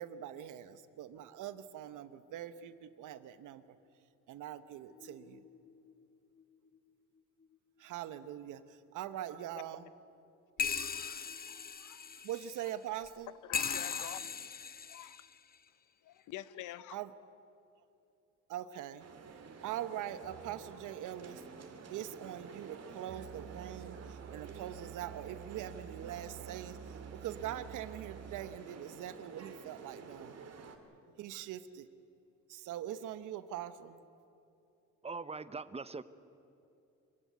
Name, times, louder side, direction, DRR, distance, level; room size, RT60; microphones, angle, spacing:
voice 1, 0.0-3.8 4.3-5.4 7.8-9.9 12.2-13.3 16.9-17.1 18.5-19.1 19.6-21.4 21.9-30.3 31.2-31.9 32.5-34.0, right 11 dB, 85° right, 1.1 m, -43 dB
sound 1, 4.9-5.9 6.4-6.5 6.7-6.8 10.6-13.1 13.5-15.5 16.4-16.5, left 6 dB, 30° left, 1.0 m, -39 dB
voice 2, 10.6-12.2 13.4-14.3 14.9-15.2 16.0-17.0, left 14 dB, 85° left, 0.8 m, -47 dB
sound 2, 19.0-30.8, right 5 dB, 55° right, 2.4 m, -51 dB
Musical instrument, 23.1-28.7, right 9 dB, 40° right, 0.5 m, -50 dB
voice 3, 35.0-36.0, right 4 dB, 20° right, 0.9 m, -41 dB
25.5 x 16.0 x 9.5 m
cardioid pair, 90°, 30 cm